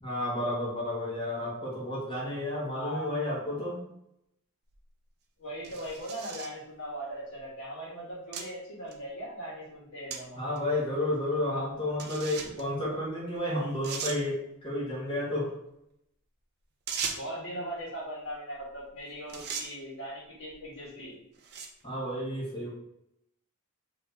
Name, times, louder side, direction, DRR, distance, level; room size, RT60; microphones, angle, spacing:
voice 1, 0.0-3.8 10.3-15.5 21.8-22.7, left 1 dB, 25° left, -5 dB, 1.1 m, -31 dB
voice 2, 2.6-3.2 5.4-10.4 17.2-21.2, equal, 65° left, -7 dB, 1.2 m, -39 dB
sound 1, 4.7-4.8 5.6-6.6 7.4-7.5 8.3-8.5 8.9-9.0 10.1-10.2 10.6-10.7 12.0-12.6 13.3-13.4 13.8-14.2 16.9-17.4 18.8-19.0 19.3-19.7 20.5-20.7 21.3-21.8, right 6 dB, 50° right, 0.5 m, -37 dB
2.8 x 2.6 x 3.6 m, 0.80 s
head